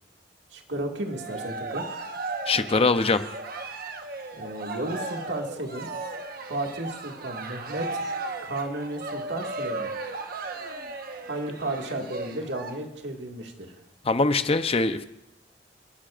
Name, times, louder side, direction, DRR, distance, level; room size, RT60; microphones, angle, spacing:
voice 1, 0.5-1.8 4.3-5.9 6.5-8.1 8.4-9.9 11.2-13.8, right 1 dB, 75° right, 1 dB, 2.0 m, -33 dB
Cheering, 1.0-12.7, right 3 dB, 55° right, 1.2 m, -36 dB
voice 2, 2.5-3.2 14.0-15.0, left 3 dB, 35° left, 10 dB, 0.7 m, -22 dB
30.0 x 11.5 x 2.5 m, 0.87 s
head